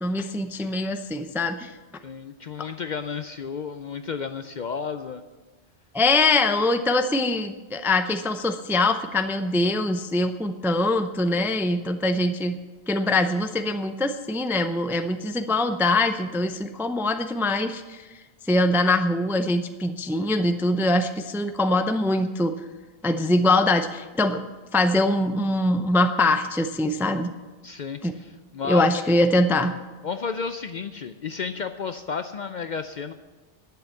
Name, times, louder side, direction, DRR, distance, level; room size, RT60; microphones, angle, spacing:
voice 1, 0.0-1.7 5.9-12.6 12.9-18.1 18.5-22.5 23.0-24.4 24.7-27.3 28.0-28.1 28.7-29.7, left 2 dB, 5° right, 8 dB, 0.3 m, -23 dB
voice 2, 2.0-5.2 27.6-29.0 30.0-33.1, left 5 dB, 55° left, 9 dB, 0.5 m, -32 dB
10.5 x 8.0 x 8.3 m, 1.2 s
omnidirectional pair, 1.2 m